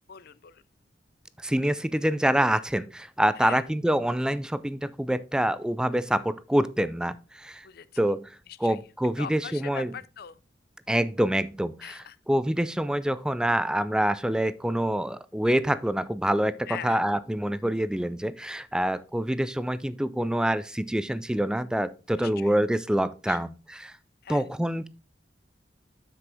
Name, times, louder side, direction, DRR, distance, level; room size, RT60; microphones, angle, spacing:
voice 1, 0.1-0.6 3.4-3.6 7.6-8.0 8.5-8.8 9.2-10.4 11.8-12.2 16.7-17.0 18.7-18.8 22.2-22.5 23.3-23.4 24.2-24.4, left 8 dB, 60° left, 0.5 m, -41 dB
voice 2, 1.4-7.7 8.0-8.4 8.6-9.9 10.9-12.0 12.3-23.9 24.3-24.9, right 1 dB, 5° right, 0.3 m, -26 dB
7.7 x 6.1 x 3.4 m
head